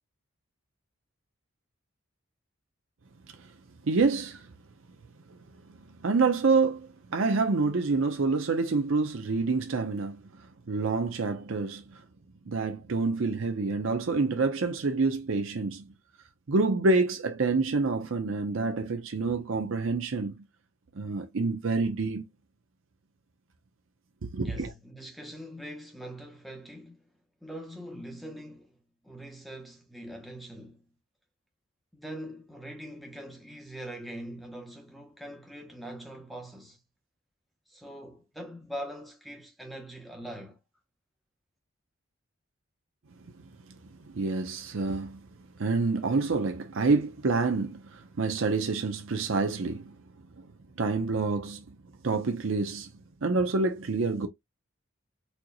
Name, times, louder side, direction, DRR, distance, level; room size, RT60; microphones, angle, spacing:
voice 1, 3.8-4.5 6.0-10.2 10.7-12.0 12.5-15.9 16.5-20.4 21.0-22.3 24.2-24.7 44.0-45.2 45.6-49.9 50.8-51.8 52.0-52.9 53.2-54.3, right 3 dB, 65° right, 0.6 m, -27 dB
voice 2, 24.4-27.1 27.4-28.8 29.0-30.8 31.9-36.8 37.7-40.6, equal, ahead, 0.8 m, -42 dB
4.3 x 2.8 x 2.2 m
head